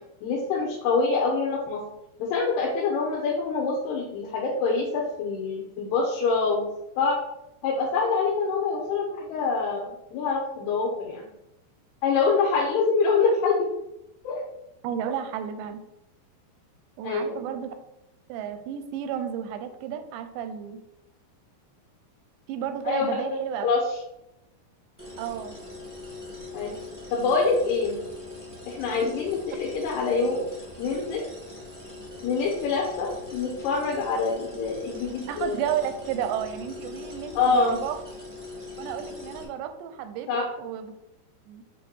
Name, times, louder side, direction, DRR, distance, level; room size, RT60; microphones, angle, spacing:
voice 1, 0.2-1.8 2.2-6.6 7.0-7.2 7.6-11.3 12.0-13.7 14.2-14.4 17.0-17.5 22.9-23.8 26.5-26.7 27.1-28.0 28.7-30.4 30.8-31.2 32.2-35.6 37.4-37.8 40.3-40.5, left 4 dB, 80° left, -2 dB, 2.9 m, -25 dB
voice 2, 14.8-15.8 17.0-17.7 18.3-20.8 22.5-23.7 25.2-25.6 35.2-38.0 38.8-40.9 41.5-41.6, right 9 dB, 90° right, 8 dB, 2.8 m, -32 dB
sound 1, 25.0-39.4, left 2 dB, 20° right, 0.5 m, -41 dB
8.2 x 3.2 x 4.3 m, 0.88 s
omnidirectional pair, 4.9 m